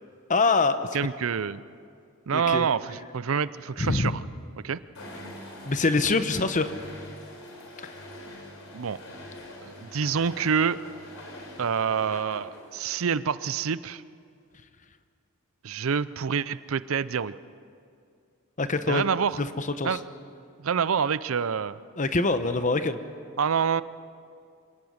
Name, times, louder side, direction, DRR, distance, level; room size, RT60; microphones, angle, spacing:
voice 1, 0.3-0.9 2.3-2.7 3.8-4.2 5.7-6.7 7.8-8.0 18.6-19.1 19.4-20.0 22.0-23.0, left 3 dB, 35° left, 10 dB, 0.9 m, -24 dB
voice 2, 0.9-1.6 2.3-4.2 4.6-4.8 8.7-9.0 9.6-10.8 11.6-14.0 15.6-17.3 18.9-19.4 19.8-20.0 20.6-21.8 23.4-23.8, right 6 dB, 70° right, 17 dB, 0.5 m, -27 dB
sound 1, 4.9-13.2, left 1 dB, 70° left, 4.0 m, -44 dB
26.0 x 18.0 x 6.4 m, 2.3 s
head